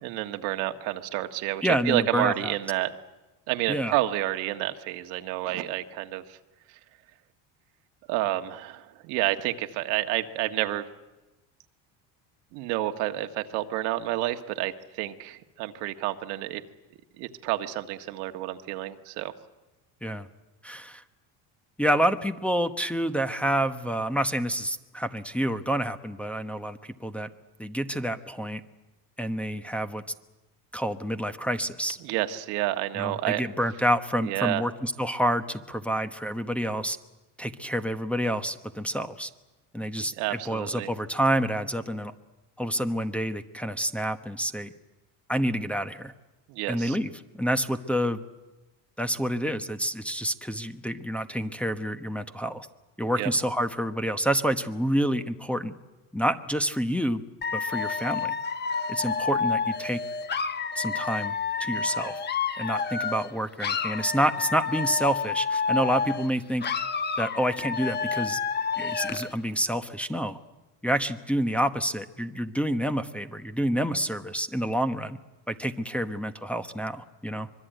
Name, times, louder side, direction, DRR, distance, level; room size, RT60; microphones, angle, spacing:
voice 1, 0.0-2.9 3.5-6.4 8.1-10.8 12.5-16.6 17.2-19.3 32.0-33.5 34.2-34.6 40.0-40.9 46.5-47.0 53.2-53.3, right 15 dB, 80° right, 7 dB, 1.6 m, -29 dB
voice 2, 1.6-2.5 3.7-3.9 20.0-20.3 20.6-21.0 21.8-27.3 27.6-28.6 29.2-30.0 30.7-32.0 33.0-37.0 37.4-39.3 39.7-42.1 42.6-44.7 45.3-46.1 46.7-47.1 47.4-48.2 49.0-52.7 53.0-55.7 56.1-57.2 57.5-58.3 58.9-60.0 60.8-61.3 61.6-62.2 62.6-66.7 67.2-68.4 68.8-70.4 70.8-75.2 75.5-77.5, equal, 5° left, 6 dB, 1.0 m, -28 dB
Dog / Alarm, 57.4-63.3 63.6-66.3 66.6-69.3, left 5 dB, 25° left, 1.0 m, -29 dB
24.5 x 22.5 x 9.2 m, 1.1 s
cardioid pair, 130°, 40 cm